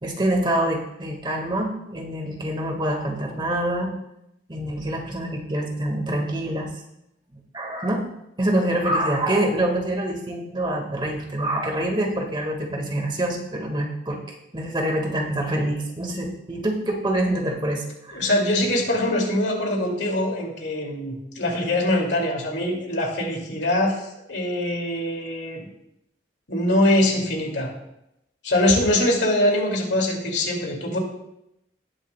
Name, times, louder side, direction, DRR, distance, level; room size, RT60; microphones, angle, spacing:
voice 1, 0.0-3.9 4.5-6.7 7.5-8.1 8.4-18.3, right 1 dB, 25° right, 1 dB, 1.6 m, -26 dB
voice 2, 18.1-25.7 26.5-27.7 28.4-31.0, left 1 dB, 80° left, 0 dB, 2.3 m, -23 dB
18.5 x 7.4 x 2.2 m, 0.84 s
head